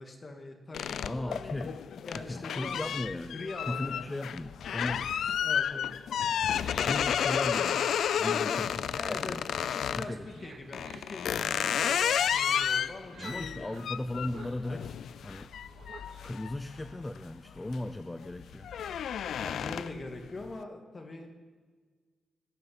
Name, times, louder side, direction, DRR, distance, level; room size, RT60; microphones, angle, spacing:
voice 1, 0.0-1.7 2.0-2.8 3.3-4.0 5.4-5.9 8.2-8.6 9.0-9.4 9.7-13.7 19.4-21.3, left 2 dB, 35° left, 3 dB, 2.3 m, -42 dB
sound 1, 0.7-10.1 10.7-17.2 17.6-17.9 18.3-20.1, left 8 dB, 85° left, 0.4 m, -31 dB
voice 2, 1.0-1.8 2.3-3.4 3.7-5.1 6.8-7.9 8.2-8.7 9.1-9.4 10.0-10.5 13.2-15.0 15.2-15.5 16.2-18.7, left 1 dB, 15° left, 9 dB, 0.6 m, -37 dB
sound 2, 7.8-16.5, right 5 dB, 85° right, 1.4 m, -53 dB
17.5 x 7.6 x 9.6 m, 1.5 s
wide cardioid pair, 125°, 0 cm